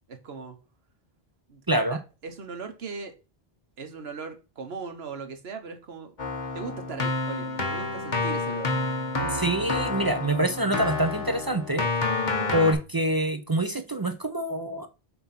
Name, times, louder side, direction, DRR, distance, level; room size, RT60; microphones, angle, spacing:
voice 1, 0.1-0.6 1.5-1.6 1.9-3.1 3.8-6.1 6.5-8.7, right 5 dB, 75° right, 1.3 m, -39 dB
voice 2, 1.7-2.0 9.2-11.9 12.5-14.9, right 1 dB, 35° right, 0.4 m, -26 dB
Keyboard (musical), 6.2-12.7, left 3 dB, 45° left, 1.4 m, -29 dB
6.9 x 2.9 x 5.8 m
omnidirectional pair, 1.1 m